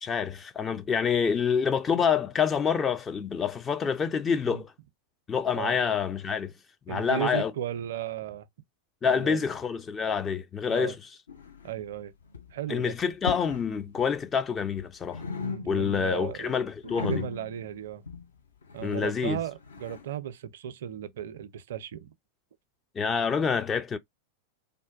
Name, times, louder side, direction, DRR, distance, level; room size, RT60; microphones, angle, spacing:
voice 1, 0.0-4.7 5.3-6.5 6.9-7.5 9.0-11.0 12.7-15.2 15.7-17.2 18.8-19.4 23.0-24.0, left 6 dB, 20° left, 0.3 m, -27 dB
voice 2, 6.9-8.5 9.0-9.4 10.7-11.0 11.6-12.1 12.5-12.9 15.4-16.6 17.0-18.0 18.7-22.1, right 11 dB, 60° right, 0.4 m, -35 dB
sound 1, 11.3-12.0 12.2-12.6 13.1-13.7 14.0-14.8 15.1-16.1 16.4-20.1, left 5 dB, 70° left, 0.6 m, -38 dB
3.5 x 2.1 x 2.4 m
figure-of-eight pair, 90°, 0 cm